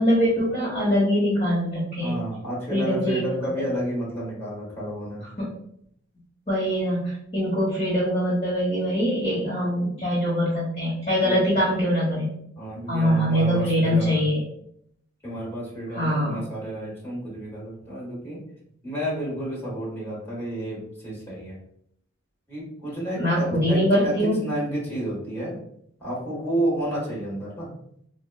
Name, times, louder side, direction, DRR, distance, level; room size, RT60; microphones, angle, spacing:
voice 1, 0.0-2.2 2.7-3.2 5.4-5.5 6.5-12.3 12.9-14.4 15.9-16.4 23.2-24.4, equal, 30° left, -8 dB, 0.9 m, -23 dB
voice 2, 2.0-5.2 11.2-11.4 12.6-14.3 15.2-18.4 18.8-21.6 22.5-25.6 26.0-27.7, right 1 dB, 10° left, -7 dB, 1.4 m, -31 dB
3.8 x 2.2 x 2.3 m, 0.68 s
head